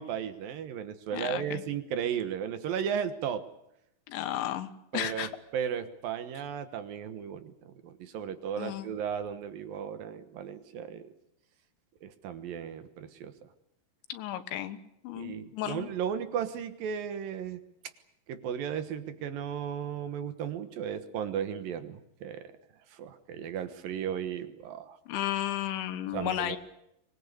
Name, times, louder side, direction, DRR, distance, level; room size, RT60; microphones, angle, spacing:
voice 1, 0.0-3.4 4.9-11.1 12.0-13.5 15.1-17.6 18.3-22.5 22.9-25.0 26.1-26.6, right 8 dB, 65° right, 10 dB, 2.5 m, -35 dB
voice 2, 1.1-1.6 4.1-5.3 8.6-8.9 14.1-14.8 15.0-15.9 25.1-26.6, left 12 dB, 85° left, 9 dB, 3.7 m, -33 dB
24.5 x 20.5 x 8.5 m, 0.81 s
omnidirectional pair, 5.2 m